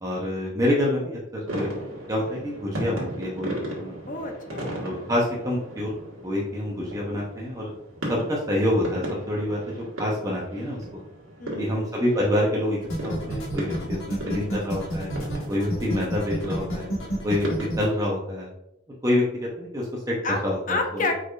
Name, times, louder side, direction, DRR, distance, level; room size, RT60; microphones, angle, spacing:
voice 1, 0.0-1.7 2.1-3.9 4.8-6.0 6.2-7.7 8.1-11.0 11.6-15.1 15.5-16.9 17.2-18.5 19.0-20.2 20.4-21.1, left 1 dB, 15° right, -4 dB, 0.7 m, -27 dB
sound 1, 1.5-18.0, right 1 dB, 85° right, 1.6 m, -37 dB
voice 2, 4.1-4.8 11.4-11.9 20.2-20.4 20.7-21.1, left 3 dB, 40° left, 4 dB, 0.6 m, -29 dB
sound 2, 12.8-17.8, equal, 90° left, 1.2 m, -29 dB
4.7 x 4.4 x 2.4 m, 0.87 s
head